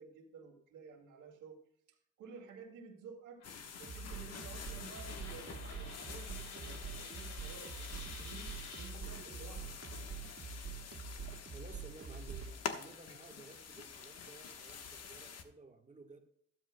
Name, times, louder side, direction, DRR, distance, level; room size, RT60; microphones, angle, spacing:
voice 1, 0.0-1.6 1.9-3.4 3.7-9.8, right 5 dB, 85° right, -3 dB, 2.0 m, -53 dB
Coin (dropping), 3.4-8.9, left 3 dB, 80° left, 4.9 m, -54 dB
sound 1, 3.4-15.4, left 6 dB, 55° left, 1.2 m, -48 dB
sound 2, 3.8-12.6, right 5 dB, 45° right, 2.0 m, -46 dB
voice 2, 11.5-16.2, right 3 dB, 25° right, 3 dB, 1.3 m, -55 dB
13.0 x 12.5 x 2.2 m, 0.69 s
cardioid pair, 90°, 30 cm